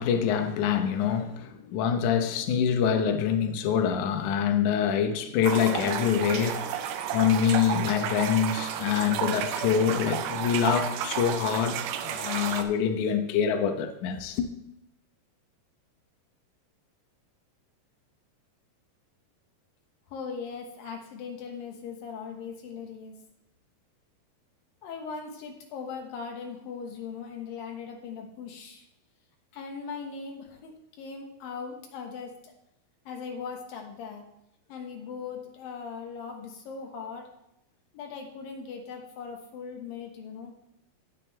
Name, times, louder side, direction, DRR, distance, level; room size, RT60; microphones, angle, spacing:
voice 1, 0.0-6.6 7.1-14.5, left 8 dB, 90° left, 1.7 m, -25 dB
sound 1, 5.4-12.6, right 9 dB, 80° right, 2.4 m, -32 dB
voice 2, 20.1-23.1 24.8-28.8 29.5-32.5 33.1-34.2 34.7-37.3 37.9-40.5, left 5 dB, 65° left, 2.8 m, -39 dB
17.5 x 6.0 x 3.3 m
omnidirectional pair, 4.8 m